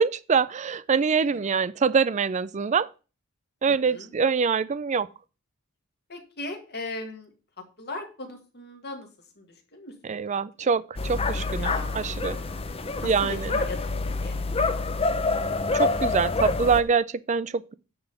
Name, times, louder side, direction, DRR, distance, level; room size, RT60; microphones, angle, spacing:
voice 1, 0.0-2.9 3.6-5.1 10.0-12.4 13.0-13.5 15.7-17.7, right 5 dB, 35° right, 0.4 m, -24 dB
voice 2, 1.3-1.7 3.7-4.1 6.1-7.3 7.6-9.1 9.4-10.2 10.6-10.7 11.6-12.1 13.0-13.8 14.2-14.4 14.7-15.3, left 2 dB, 50° left, 2.0 m, -39 dB
sound 1, 11.0-16.8, left 3 dB, 25° left, 0.6 m, -27 dB
9.7 x 3.7 x 6.8 m
head